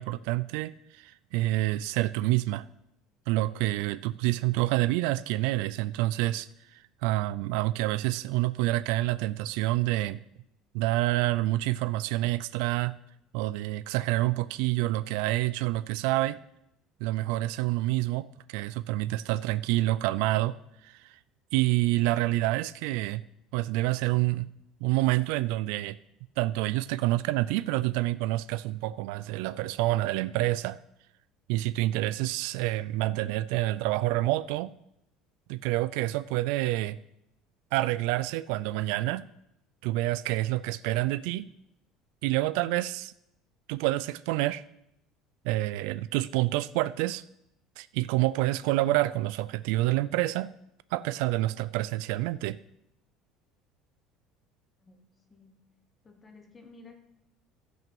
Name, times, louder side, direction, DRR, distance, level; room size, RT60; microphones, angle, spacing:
voice 1, 0.0-2.6 3.3-6.5 7.0-10.2 10.7-13.0 13.3-16.4 17.0-20.6 20.8-21.2 21.5-23.2 23.5-24.5 24.8-26.0 26.4-30.8 31.5-34.7 35.5-37.0 37.7-39.3 39.8-41.5 42.2-43.1 43.7-44.6 45.4-47.2 47.8-50.5 50.9-52.6, right 17 dB, 70° right, 16 dB, 0.3 m, -28 dB
voice 2, 56.0-57.0, left 3 dB, 15° left, 5 dB, 1.0 m, -53 dB
14.5 x 6.0 x 5.4 m, 0.82 s
cardioid pair, 180°, 0 cm